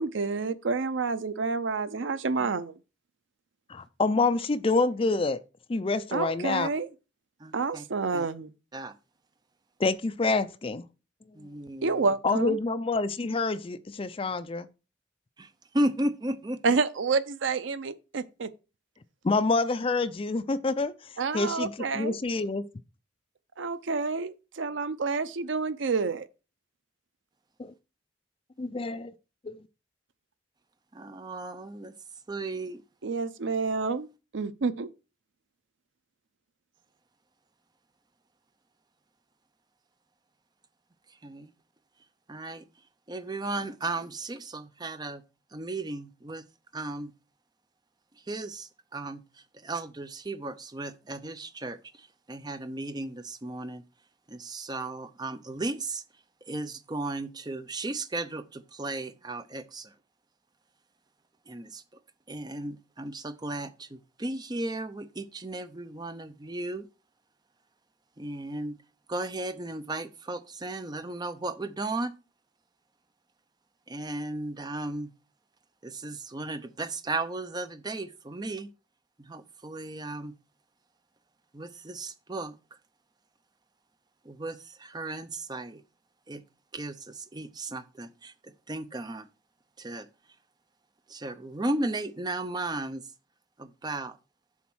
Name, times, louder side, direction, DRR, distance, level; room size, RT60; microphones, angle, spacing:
voice 1, 0.0-2.8 6.1-6.9 7.5-8.5 11.8-12.6 16.6-18.5 21.2-22.2 23.6-26.3 33.0-34.1 34.3-34.9, right 4 dB, 75° right, 0.6 m, -29 dB
voice 2, 3.7-5.4 5.7-6.7 9.8-10.8 12.2-14.7 19.2-20.9 21.3-22.6 27.6-27.7 28.6-29.1 29.4-29.6, left 3 dB, 30° left, 0.4 m, -27 dB
voice 3, 7.4-7.8 8.1-8.3 8.7-8.9 11.3-12.1 15.4-16.8 30.9-31.9 32.3-32.8 41.1-41.5 42.3-42.6 43.1-45.2 45.5-46.4 46.7-47.1 48.3-53.8 54.3-56.0 56.4-59.9 61.5-61.8 62.3-66.9 68.2-68.8 69.1-72.1 73.9-75.1 75.8-78.7 79.2-80.3 81.5-82.6 84.2-85.8 86.3-86.4 86.7-89.3 89.8-90.1 91.1-93.1 93.6-94.2, right 2 dB, 20° right, 0.6 m, -35 dB
7.2 x 4.2 x 6.2 m
head